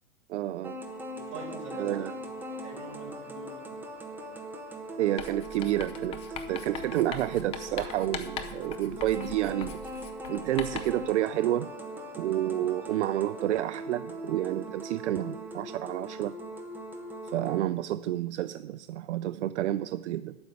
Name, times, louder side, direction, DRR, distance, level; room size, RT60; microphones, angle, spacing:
voice 1, 0.3-0.8 1.7-2.2 5.0-6.2 6.5-9.8 10.3-11.7 12.2-16.4 17.3-20.4, right 13 dB, 70° right, 14 dB, 0.5 m, -30 dB
sound 1, 0.6-17.6, right 1 dB, 5° right, 0.8 m, -40 dB
voice 2, 1.1-2.1 2.6-3.7, right 3 dB, 35° right, -1 dB, 4.1 m, -43 dB
Writing, 5.2-11.1, left 6 dB, 15° left, 0.5 m, -41 dB
12.0 x 5.3 x 8.2 m, 1.1 s
hypercardioid pair, 150°, 37 cm